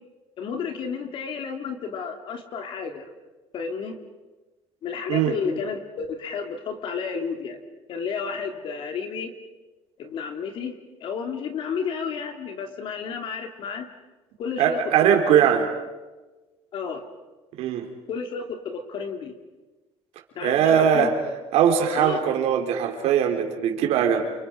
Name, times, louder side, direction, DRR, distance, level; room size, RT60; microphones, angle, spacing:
voice 1, 0.4-3.1 3.5-3.9 4.8-7.6 7.9-9.3 10.0-10.7 11.0-13.9 14.4-15.5 16.7-17.1 18.1-19.3 20.3-21.1 21.9-22.2, left 6 dB, 50° left, 5 dB, 3.0 m, -32 dB
voice 2, 14.6-15.7 17.6-17.9 20.4-21.1 21.5-24.2, right 9 dB, 70° right, 3 dB, 3.8 m, -20 dB
29.0 x 29.0 x 5.3 m, 1.2 s
cardioid pair, 165°, 11 cm